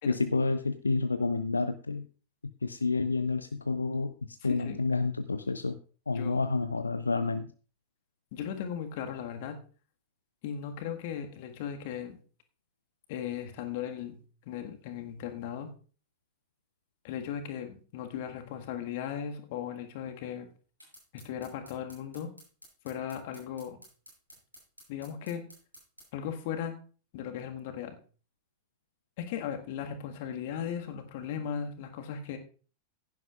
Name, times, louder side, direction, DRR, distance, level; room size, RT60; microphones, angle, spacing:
voice 1, 0.1-2.1 2.6-5.8 6.1-7.5, left 3 dB, 80° left, 11 dB, 0.5 m, -29 dB
voice 2, 8.3-9.6 10.4-12.2 13.1-15.7 17.0-20.5 21.1-22.3 22.8-23.8 24.9-25.4 26.1-26.7 27.1-28.0 29.2-32.4, left 8 dB, 50° left, 5 dB, 1.7 m, -37 dB
sound 1, 20.8-26.1, equal, 90° right, 6.8 m, -53 dB
16.0 x 10.5 x 2.4 m, 0.39 s
figure-of-eight pair, 90°, 0 cm